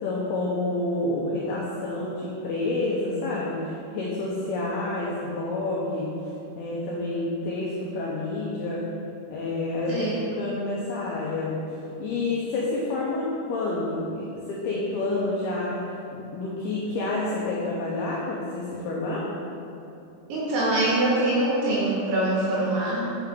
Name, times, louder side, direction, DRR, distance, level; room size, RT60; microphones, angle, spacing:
voice 1, 0.0-6.1 6.6-8.8 9.3-10.1 10.4-15.8 16.1-19.3, left 2 dB, 90° left, -5 dB, 2.2 m, -29 dB
voice 2, 9.9-10.2 20.3-23.2, right 1 dB, 70° right, -6 dB, 2.6 m, -24 dB
8.7 x 7.3 x 3.7 m, 2.8 s
omnidirectional pair, 5.8 m